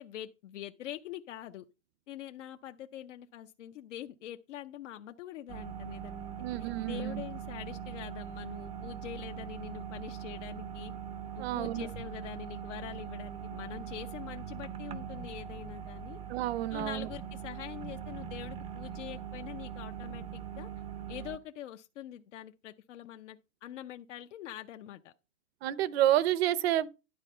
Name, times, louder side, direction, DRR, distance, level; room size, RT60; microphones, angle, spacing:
voice 1, 0.0-1.6 2.1-10.9 11.3-16.2 16.7-20.7 21.1-25.1, left 12 dB, 75° left, 0.7 m, -44 dB
sound 1, 5.5-21.4, right 8 dB, 15° right, 0.5 m, -41 dB
voice 2, 6.4-7.2 11.4-11.9 16.3-17.1 25.6-26.9, right 13 dB, 55° right, 0.7 m, -29 dB
11.0 x 4.1 x 5.4 m
hypercardioid pair, 135°, 37 cm